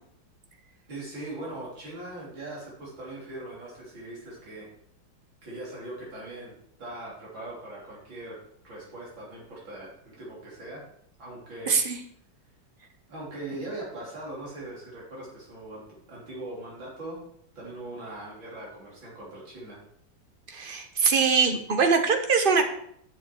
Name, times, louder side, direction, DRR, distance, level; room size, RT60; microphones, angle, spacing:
voice 1, 0.9-4.7 5.4-10.8 11.2-11.7 13.1-17.2 17.6-19.8, right 2 dB, 70° right, -5 dB, 4.2 m, -40 dB
voice 2, 11.7-12.0 20.5-22.7, right 5 dB, 35° right, 6 dB, 0.9 m, -22 dB
9.4 x 7.3 x 4.6 m, 0.68 s
omnidirectional pair, 2.2 m